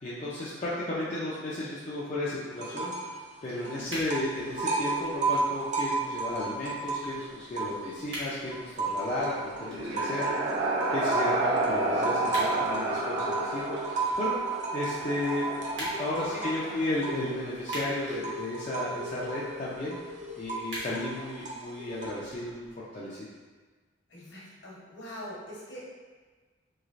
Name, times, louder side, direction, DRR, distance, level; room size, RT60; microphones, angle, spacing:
voice 1, 0.0-3.2 3.4-14.4 14.7-15.5 15.8-20.0 20.4-22.7 22.9-23.2, left 1 dB, 35° left, -8 dB, 0.4 m, -34 dB
sound 1, 2.6-3.2 3.5-8.1 8.5-22.3, right 3 dB, 35° right, 0.4 m, -34 dB
voice 2, 3.5-3.9 16.2-17.1 24.1-25.8, equal, 60° left, -6 dB, 0.9 m, -44 dB
sound 2, 3.8-22.7, equal, 65° right, 1.2 m, -46 dB
sound 3, 9.3-17.2, right 2 dB, 85° right, 0.5 m, -31 dB
3.1 x 3.1 x 2.5 m, 1.4 s
head